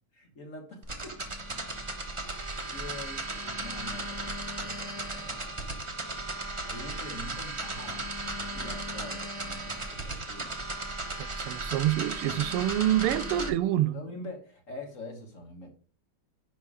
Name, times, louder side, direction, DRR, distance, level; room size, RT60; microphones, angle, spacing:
voice 1, 0.1-1.2 2.2-6.1 6.7-10.6 13.9-15.7, left 1 dB, 40° left, 1.5 m, -45 dB
sound 1, 0.8-13.5, right 2 dB, 25° right, 0.6 m, -36 dB
voice 2, 11.4-14.0, right 13 dB, 90° right, 1.6 m, -27 dB
10.0 x 3.7 x 4.9 m
omnidirectional pair, 2.4 m